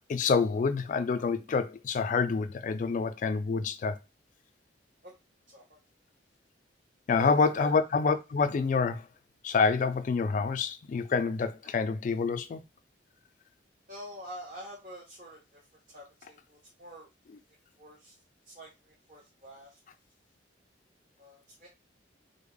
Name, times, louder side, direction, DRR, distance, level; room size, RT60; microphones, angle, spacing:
voice 1, 0.1-4.0 7.1-9.0 9.4-12.6, left 5 dB, 45° left, 0.3 m, -27 dB
voice 2, 5.5-5.8 7.1-7.8 13.9-15.6 15.9-17.1 17.8-18.2 18.5-19.8 21.2-21.7, right 1 dB, 45° right, 0.9 m, -46 dB
3.4 x 2.0 x 3.7 m
head